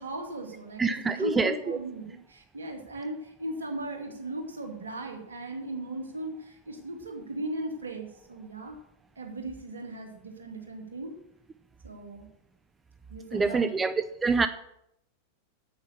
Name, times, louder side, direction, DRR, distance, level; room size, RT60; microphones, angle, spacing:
voice 1, 0.0-8.8 9.2-11.1 11.8-12.3 13.1-13.8, right 1 dB, 70° right, 2 dB, 2.4 m, -37 dB
voice 2, 0.8-1.8 13.3-13.9 14.2-14.5, right 4 dB, 15° right, 11 dB, 0.6 m, -25 dB
8.9 x 8.5 x 6.8 m, 0.78 s
figure-of-eight pair, 90°, 0 cm